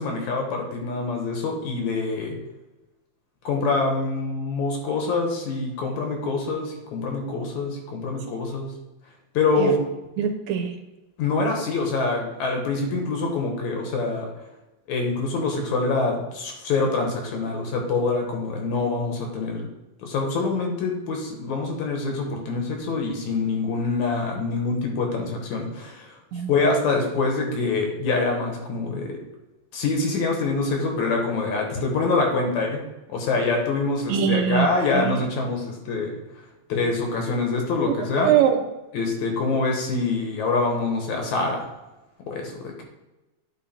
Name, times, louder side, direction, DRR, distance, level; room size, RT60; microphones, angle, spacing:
voice 1, 0.0-2.3 3.4-8.7 9.3-9.8 11.2-14.3 14.9-19.7 20.0-26.2 26.5-29.1 29.7-32.8 33.1-36.1 36.7-38.3 38.9-41.6 42.3-42.8, left 3 dB, 80° left, 2 dB, 2.7 m, -25 dB
voice 2, 10.2-10.7 26.3-26.5 34.1-34.7 34.9-35.1 38.2-38.6, right 9 dB, 75° right, 5 dB, 2.2 m, -22 dB
10.0 x 4.2 x 4.3 m, 1.0 s
omnidirectional pair, 3.3 m